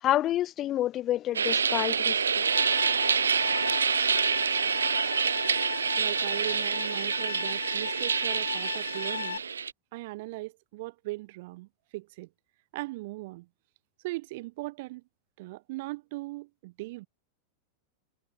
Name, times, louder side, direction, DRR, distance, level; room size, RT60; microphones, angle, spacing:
voice 1, 0.0-2.4, left 13 dB, 30° left, 2.8 m, -28 dB
sound 1, 1.3-9.7, right 6 dB, 70° right, 1.5 m, -27 dB
sound 2, 2.4-9.4, left 8 dB, 70° left, 6.3 m, -37 dB
voice 2, 6.0-9.4 9.9-12.3 12.7-13.5 14.0-15.0 15.4-17.1, right 21 dB, 50° right, 6.0 m, -39 dB
figure-of-eight pair, 90°, 0 cm